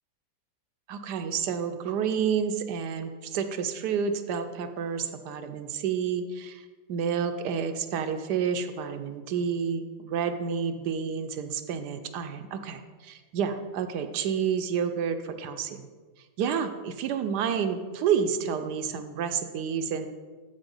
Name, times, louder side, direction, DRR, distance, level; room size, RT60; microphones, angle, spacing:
voice 1, 0.9-15.9 16.4-20.1, right 7 dB, 80° right, 8 dB, 1.2 m, -30 dB
12.0 x 4.1 x 5.3 m, 1.4 s
omnidirectional pair, 1.8 m